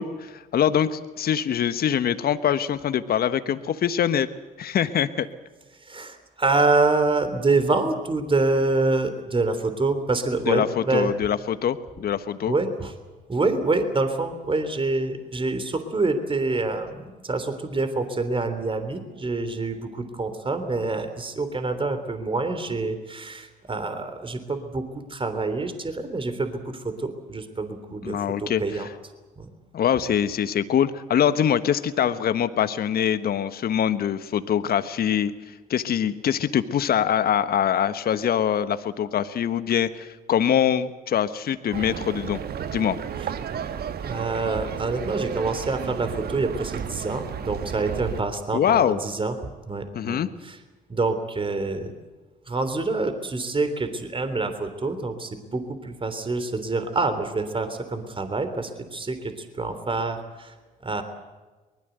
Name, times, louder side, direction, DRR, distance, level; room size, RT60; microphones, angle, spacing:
voice 1, 0.0-4.3 4.6-5.3 10.5-12.5 28.0-28.8 29.7-42.4 42.7-43.0 48.5-49.0 49.9-50.3, left 9 dB, 50° left, 12 dB, 1.3 m, -24 dB
voice 2, 5.8-11.1 12.5-12.9 13.3-28.9 29.4-29.5 43.2-43.3 44.0-50.6 50.9-51.9 52.5-60.5 60.8-61.0, right 3 dB, 25° right, 9 dB, 3.5 m, -26 dB
sound 1, 41.7-48.2, right 8 dB, 50° right, 1.4 m, -33 dB
23.5 x 20.5 x 8.1 m, 1.2 s
hypercardioid pair, 55°, 20 cm